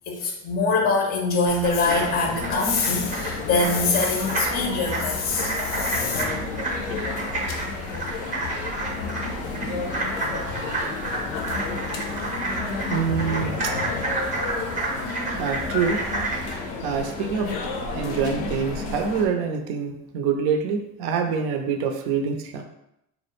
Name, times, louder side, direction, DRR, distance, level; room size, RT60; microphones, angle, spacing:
voice 1, 0.1-6.2, left 3 dB, 25° left, 1 dB, 0.5 m, -24 dB
sound 1, 1.5-16.5, right 2 dB, 20° right, 0.6 m, -31 dB
sound 2, 1.8-19.3, left 4 dB, 80° left, 0.6 m, -32 dB
voice 2, 12.9-13.7 15.4-16.0 16.8-17.5 17.9-22.6, right 6 dB, 65° right, 5 dB, 0.5 m, -26 dB
2.3 x 2.0 x 3.0 m, 0.82 s
hypercardioid pair, 80°, 40 cm